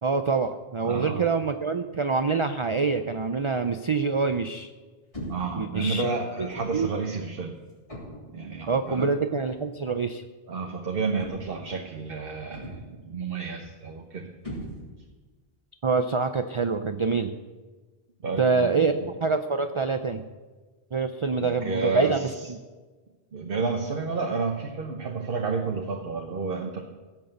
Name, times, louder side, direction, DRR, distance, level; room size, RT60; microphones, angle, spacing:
voice 1, 0.0-4.7 5.6-6.1 6.7-6.9 8.7-10.2 15.8-17.3 18.4-20.2 20.9-22.6, right 4 dB, 40° right, 9 dB, 0.5 m, -26 dB
voice 2, 0.8-1.3 5.3-7.6 8.3-9.1 10.5-14.3 18.2-19.0 21.4-22.5 23.3-26.8, right 4 dB, 60° right, 3 dB, 1.2 m, -31 dB
sound 1, 5.1-5.6 6.5-6.8 7.9-8.4 9.5-9.7 11.2-11.7 12.5-13.0 14.4-15.1, equal, 30° left, 3.2 m, -39 dB
16.0 x 6.7 x 7.8 m, 1.3 s
omnidirectional pair, 1.1 m